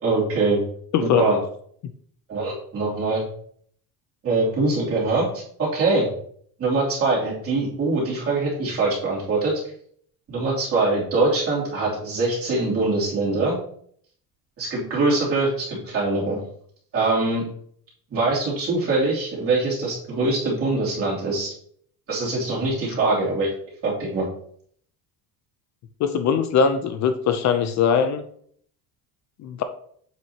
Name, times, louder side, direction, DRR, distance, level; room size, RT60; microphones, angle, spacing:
voice 1, 0.0-0.6 1.0-1.4 2.3-3.2 4.2-5.3 5.6-6.1 6.6-9.5 10.3-13.6 14.6-16.4 16.9-17.4 18.1-21.5 22.1-23.5 23.8-24.3, right 3 dB, 35° right, -5 dB, 3.0 m, -23 dB
voice 2, 0.9-1.2 26.0-28.2 29.4-29.6, left 7 dB, 50° left, 9 dB, 0.6 m, -21 dB
7.5 x 5.6 x 2.9 m, 0.62 s
cardioid pair, 155°, 37 cm